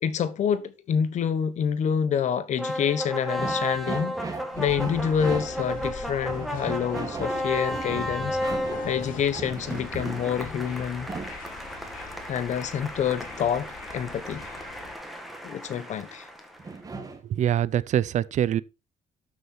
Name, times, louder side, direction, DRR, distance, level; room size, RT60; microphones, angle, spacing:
voice 1, 0.0-4.2 4.6-8.4 8.8-11.1 12.3-14.4 15.4-16.3, left 8 dB, 55° left, 1.2 m, -27 dB
sound 1, 2.6-16.8, equal, ahead, 1.8 m, -34 dB
sound 2, 3.4-5.8 6.3-11.4 16.6-17.2, right 3 dB, 25° right, 1.8 m, -37 dB
sound 3, 4.5-14.9, left 5 dB, 70° left, 2.5 m, -43 dB
voice 2, 17.2-18.6, right 10 dB, 55° right, 0.5 m, -24 dB
12.5 x 6.5 x 4.4 m
cardioid pair, 160°, 15 cm